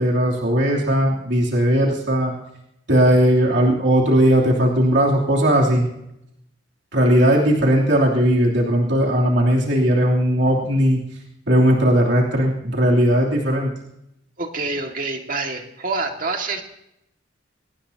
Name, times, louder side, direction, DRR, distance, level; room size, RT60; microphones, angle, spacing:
voice 1, 0.0-2.3 2.9-5.9 6.9-11.0 11.5-13.7, equal, 65° right, -2 dB, 3.0 m, -18 dB
voice 2, 14.4-16.6, right 3 dB, 45° right, 3 dB, 2.0 m, -26 dB
23.0 x 18.0 x 2.9 m, 0.80 s
head